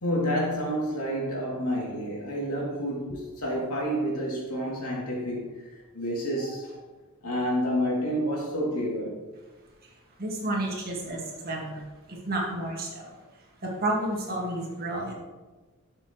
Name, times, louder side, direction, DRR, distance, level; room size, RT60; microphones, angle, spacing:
voice 1, 0.0-6.8 7.2-9.2, equal, 80° left, -3 dB, 2.8 m, -29 dB
voice 2, 9.8-13.2 13.6-15.1, right 1 dB, 45° right, -1 dB, 1.9 m, -31 dB
11.5 x 6.7 x 3.1 m, 1.2 s
head